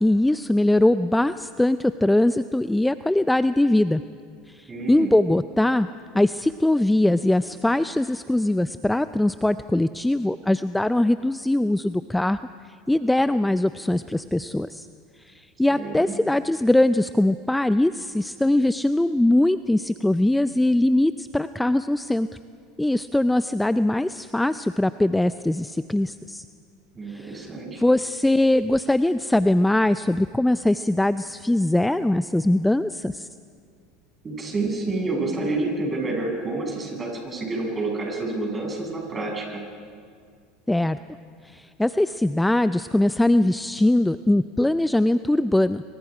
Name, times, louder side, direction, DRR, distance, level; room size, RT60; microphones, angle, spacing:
voice 1, 0.0-4.0 4.5-5.9 6.1-12.4 12.9-14.9 15.3-22.3 22.8-26.4 27.1-27.5 27.8-33.3 40.7-41.0 41.4-45.8, left 1 dB, 5° left, 13 dB, 0.5 m, -21 dB
voice 2, 4.7-5.1 15.7-16.1 27.0-27.8 34.2-39.6, right 2 dB, 25° right, 0 dB, 7.1 m, -28 dB
26.5 x 24.0 x 5.0 m, 2.2 s
supercardioid pair, 105°, 0 cm